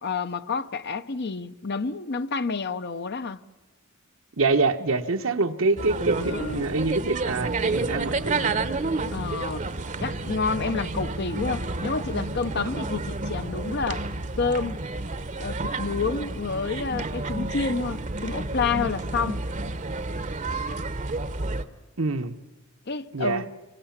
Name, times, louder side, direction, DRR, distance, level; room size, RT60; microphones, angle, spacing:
voice 1, 0.0-3.4 6.1-6.7 9.1-9.7 10.0-14.1 14.4-14.8 15.4-19.4 22.9-23.5, left 4 dB, 55° left, 0.8 m, -29 dB
voice 2, 4.4-8.6 22.0-22.3 23.1-23.4, right 3 dB, 75° right, 1.2 m, -25 dB
sound 1, 5.8-21.6, right 3 dB, 35° right, 0.9 m, -30 dB
27.0 x 23.0 x 7.3 m
head